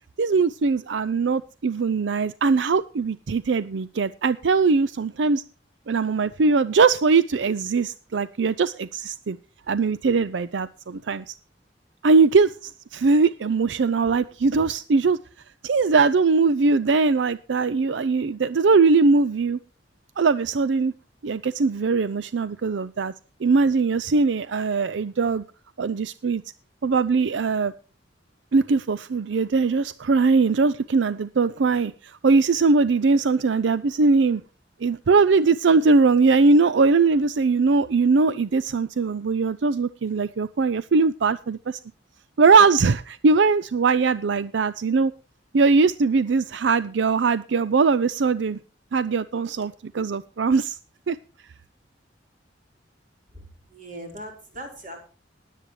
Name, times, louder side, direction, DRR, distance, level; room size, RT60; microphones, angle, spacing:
voice 1, 0.2-5.4 5.9-9.4 9.7-11.3 12.0-15.2 15.6-19.6 20.2-20.9 21.2-23.1 23.4-25.4 25.8-26.4 26.8-27.7 28.5-34.4 34.8-41.8 42.4-45.1 45.5-48.6 48.9-50.8 51.1-51.2, right 4 dB, 75° right, 0.5 m, -21 dB
voice 2, 53.7-55.0, right 1 dB, 45° right, 4.4 m, -39 dB
20.0 x 8.3 x 3.2 m
head